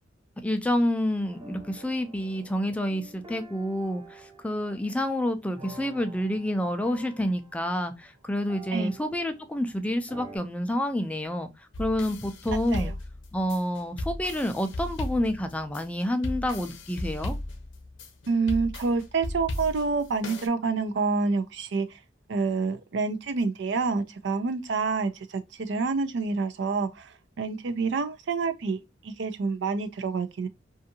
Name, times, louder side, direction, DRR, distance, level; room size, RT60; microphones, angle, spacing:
voice 1, 0.4-11.5 11.8-12.9 13.3-17.4, left 1 dB, 5° left, 0.3 m, -28 dB
sound 1, 1.2-9.7 10.1-10.4, right 2 dB, 25° right, 0.7 m, -49 dB
sound 2, 11.7-20.5, left 1 dB, 90° left, 0.6 m, -35 dB
voice 2, 18.3-22.0 22.3-30.5, right 4 dB, 65° right, 0.4 m, -28 dB
2.6 x 2.4 x 2.6 m
head